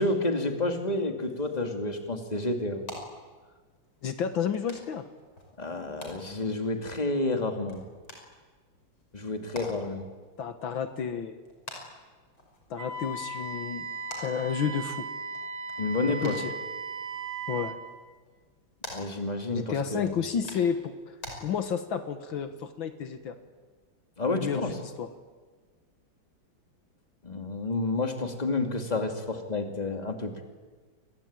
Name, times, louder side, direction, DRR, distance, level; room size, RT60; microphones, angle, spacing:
voice 1, 0.0-2.8 5.6-7.8 9.1-10.0 15.8-16.3 18.9-20.2 24.2-24.8 27.2-30.4, left 2 dB, 20° left, 5 dB, 2.7 m, -30 dB
sound 1, 1.5-21.4, left 1 dB, 90° left, 6.2 m, -49 dB
voice 2, 4.0-5.1 9.8-9.9 10.4-11.4 12.7-13.9 14.2-15.1 16.2-16.5 17.5-17.8 19.5-20.9 21.4-23.4 24.3-25.1, left 7 dB, 75° left, 9 dB, 2.1 m, -31 dB
Wind instrument woodwind instrument, 12.8-17.8, right 4 dB, 50° right, 3.6 m, -37 dB
28.0 x 22.0 x 8.9 m, 1.4 s
omnidirectional pair, 2.2 m